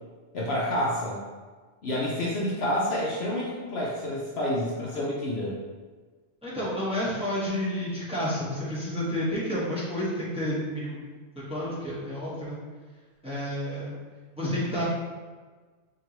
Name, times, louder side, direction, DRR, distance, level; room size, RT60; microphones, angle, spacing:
voice 1, 0.3-1.2 1.8-5.5, left 1 dB, 60° left, -5 dB, 0.9 m, -28 dB
voice 2, 6.4-11.0 11.5-12.6 13.2-13.9 14.4-14.8, equal, 5° right, -9 dB, 1.0 m, -30 dB
4.5 x 2.9 x 2.9 m, 1.4 s
omnidirectional pair, 1.3 m